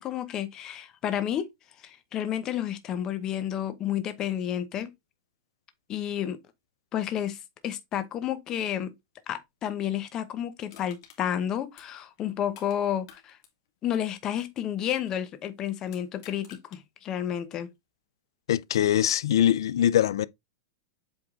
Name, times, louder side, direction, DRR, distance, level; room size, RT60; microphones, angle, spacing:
voice 1, 0.0-1.5 1.8-4.9 5.9-6.4 6.9-8.9 9.3-13.4 13.8-17.7, left 10 dB, 25° left, 0.9 m, -31 dB
Crushing, 10.7-12.8 13.0-15.3 15.8-16.8 17.3-17.4, left 9 dB, 50° left, 2.2 m, -54 dB
voice 2, 18.5-20.3, left 11 dB, 85° left, 0.5 m, -22 dB
7.9 x 3.7 x 3.7 m
supercardioid pair, 165°, 2 cm